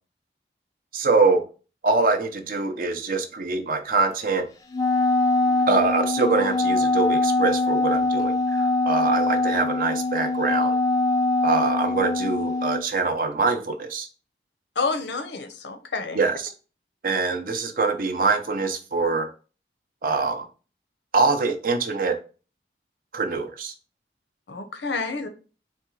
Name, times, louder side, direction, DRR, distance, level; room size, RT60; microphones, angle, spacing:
voice 1, 0.9-1.4 1.8-4.5 5.7-10.7 11.4-14.1 16.1-16.5 17.0-19.3 20.0-20.4 21.1-22.2 23.1-23.7, right 4 dB, 50° right, 6 dB, 0.5 m, -24 dB
Wind instrument woodwind instrument, 4.7-12.9, left 2 dB, 20° left, 0.3 m, -23 dB
voice 2, 14.8-16.2 24.5-25.3, left 4 dB, 85° left, 8 dB, 0.7 m, -29 dB
4.1 x 2.2 x 4.5 m, 0.36 s
head